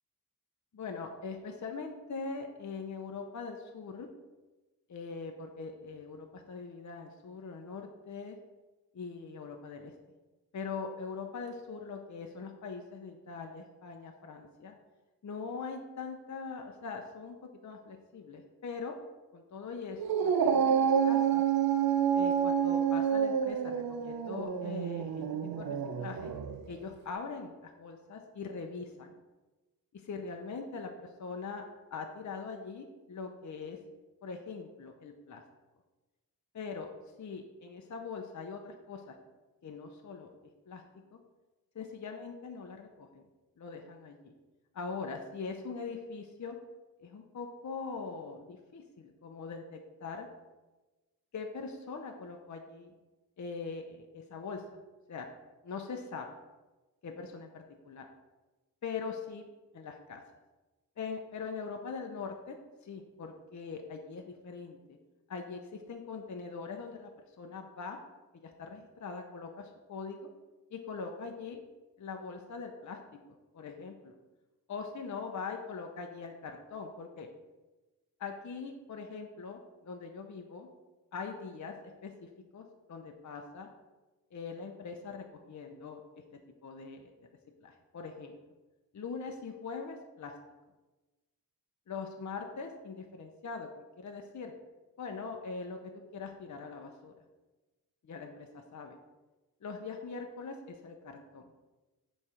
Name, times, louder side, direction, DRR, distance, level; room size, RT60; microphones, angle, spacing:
voice 1, 0.7-4.1 4.9-8.4 8.9-9.9 10.5-14.7 15.2-18.9 19.3-21.4 22.1-26.3 26.7-29.1 29.9-31.6 31.9-33.8 34.2-35.4 36.5-36.9 37.2-39.1 39.6-40.3 40.7-40.8 41.1-41.2 41.7-43.2 43.6-44.3 44.7-46.6 47.0-50.3 51.3-52.9 53.4-54.8 55.1-55.3 55.6-56.3 57.0-58.1 58.8-59.4 59.7-60.2 61.0-62.6 62.8-64.8 65.3-67.1 67.4-68.0 68.4-70.2 70.7-71.6 72.0-73.0 73.5-74.1 74.7-77.3 78.2-80.7 81.1-83.7 84.3-86.0 86.6-87.1 87.6-88.3 88.9-90.3 91.9-93.7 94.0-94.5 95.0-97.1 98.0-99.0 99.6-101.5, left 5 dB, 50° left, 3 dB, 0.6 m, -42 dB
Dog, 20.0-26.6, right 7 dB, 75° right, 0.5 m, -28 dB
7.1 x 3.2 x 4.9 m, 1.2 s
wide cardioid pair, 75°, 36 cm